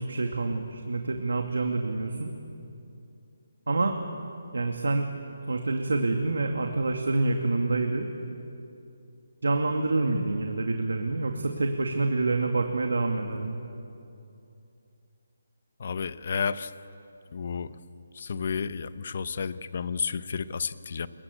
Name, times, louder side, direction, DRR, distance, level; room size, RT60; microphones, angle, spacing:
voice 1, 0.0-2.3 3.7-3.9 4.5-5.1 5.5-8.1 9.4-13.6, right 3 dB, 85° right, 4 dB, 2.4 m, -27 dB
voice 2, 15.8-16.7 17.3-17.8 18.1-21.1, left 6 dB, 40° left, 15 dB, 0.9 m, -31 dB
29.0 x 22.5 x 8.4 m, 2.7 s
hypercardioid pair, 175°, 0 cm